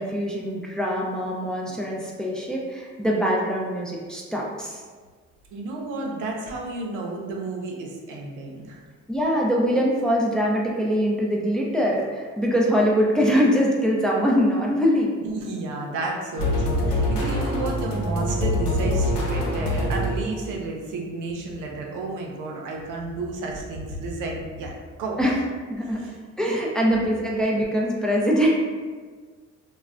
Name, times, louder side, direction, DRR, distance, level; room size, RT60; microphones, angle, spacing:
voice 1, 0.0-4.8 9.1-15.1 25.2-25.4 25.7-28.5, equal, ahead, -3 dB, 0.4 m, -23 dB
voice 2, 5.5-8.8 15.2-24.7 25.0-25.2 26.0-26.2 26.8-27.1, right 3 dB, 85° right, -1 dB, 0.6 m, -32 dB
sound 1, 16.4-20.5, left 1 dB, 70° left, 0.6 m, -24 dB
3.1 x 2.1 x 2.4 m, 1.5 s
cardioid pair, 90°, 30 cm